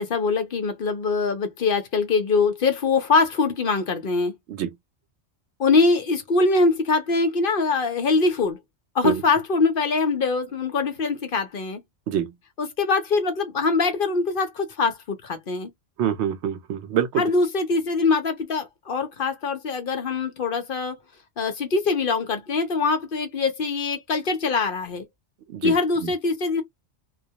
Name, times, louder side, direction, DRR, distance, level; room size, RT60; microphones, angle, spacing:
voice 1, 0.0-4.3 5.6-8.6 8.9-11.8 12.6-15.7 17.2-21.0 21.4-25.1 25.6-26.6, left 4 dB, 55° left, 0.8 m, -23 dB
voice 2, 16.0-17.2 25.5-25.8 26.0-26.1, right 9 dB, 75° right, 0.9 m, -25 dB
2.3 x 2.2 x 2.7 m
omnidirectional pair, 1.2 m